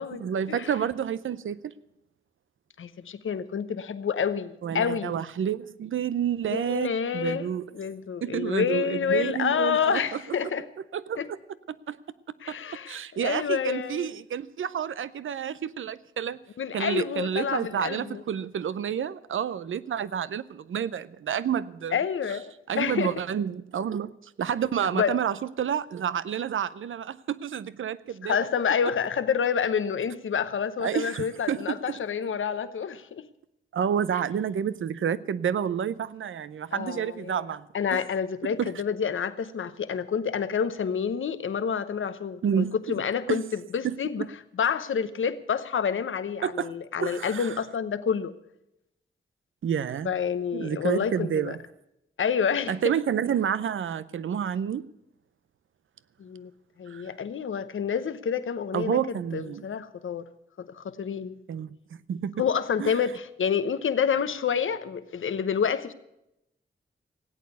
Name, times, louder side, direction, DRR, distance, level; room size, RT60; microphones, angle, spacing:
voice 1, 0.1-1.7 4.6-7.6 8.2-10.5 10.9-11.4 11.9-12.0 12.5-12.6 12.9-16.4 16.7-22.0 22.7-24.1 24.4-28.4 30.8-32.0 33.7-37.7 37.9-38.0 38.4-38.7 42.4-43.0 43.3-43.4 43.8-44.0 46.4-46.7 47.0-47.5 49.6-50.1 50.5-51.6 52.7-54.9 56.9-57.0 58.7-59.6 61.5-61.7 62.1-62.3 62.8-62.9, right 8 dB, 85° right, 16 dB, 0.6 m, -29 dB
voice 2, 2.8-5.2 6.5-7.5 7.7-10.7 11.2-11.3 12.4-14.1 16.6-18.2 21.9-23.1 24.9-25.2 28.2-33.2 36.7-37.4 37.7-44.3 44.6-48.3 50.0-51.6 52.2-52.7 56.2-56.5 56.8-60.2 60.6-61.4 62.4-65.9, left 7 dB, 80° left, 13 dB, 0.9 m, -28 dB
17.0 x 8.6 x 8.2 m, 0.83 s
cardioid pair, 40°, 20 cm